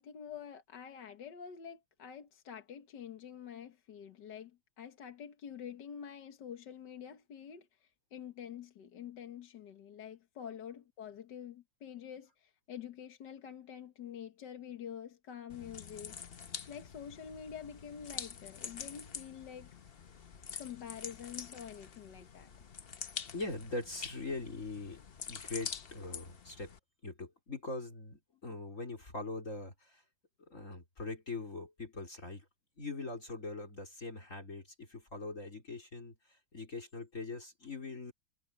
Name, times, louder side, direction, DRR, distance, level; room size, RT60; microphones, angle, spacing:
voice 1, 0.0-16.2 16.7-19.8 20.6-22.5, left 8 dB, 55° left, 1.8 m, -47 dB
sound 1, 15.5-26.8, left 7 dB, 80° left, 0.5 m, -46 dB
voice 2, 23.3-25.0 25.3-26.7 27.0-30.0 30.5-32.5 32.8-38.1, left 3 dB, 35° left, 3.8 m, -42 dB
omnidirectional pair, 2.4 m